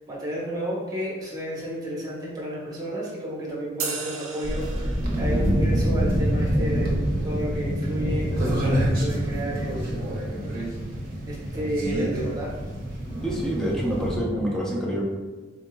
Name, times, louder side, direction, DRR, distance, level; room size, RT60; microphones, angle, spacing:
voice 1, 0.1-7.0 7.2-10.0 11.3-12.5, right 1 dB, 20° right, -6 dB, 1.0 m, -31 dB
sound 1, 3.8-5.4, right 5 dB, 85° right, 0.6 m, -35 dB
sound 2, 4.4-14.2, equal, 45° right, 0.7 m, -26 dB
voice 2, 13.2-15.0, equal, 5° left, -4 dB, 0.6 m, -27 dB
3.7 x 3.6 x 2.3 m, 1.3 s
head